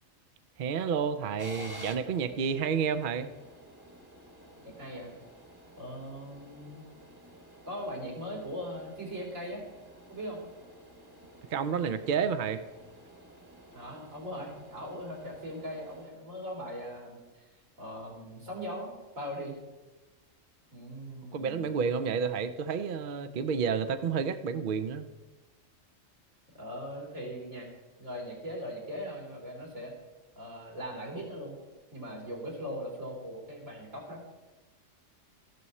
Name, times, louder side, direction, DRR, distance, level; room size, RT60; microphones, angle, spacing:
voice 1, 0.6-3.3 11.5-12.6 21.3-25.1, right 6 dB, 55° right, 11 dB, 0.6 m, -30 dB
sound 1, 1.4-16.1, equal, 20° right, 1.1 m, -52 dB
voice 2, 4.7-5.1 5.8-6.8 7.7-9.6 10.1-10.4 13.7-17.2 17.8-19.6 20.7-21.7 26.5-27.7 28.0-29.9 30.4-31.6 31.9-34.2, equal, 80° right, -3 dB, 4.0 m, -40 dB
13.5 x 12.0 x 4.3 m, 1.2 s
omnidirectional pair, 1.4 m